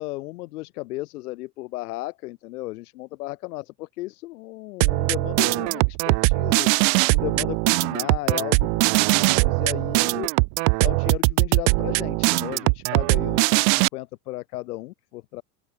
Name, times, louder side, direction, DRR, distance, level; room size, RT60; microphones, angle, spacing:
voice 1, 0.0-6.7 7.1-10.3 10.8-15.4, left 19 dB, 60° left, 7.5 m, -34 dB
sound 1, 4.8-13.9, right 40 dB or more, 45° right, 2.1 m, -21 dB
open air
supercardioid pair, 160°, 50 cm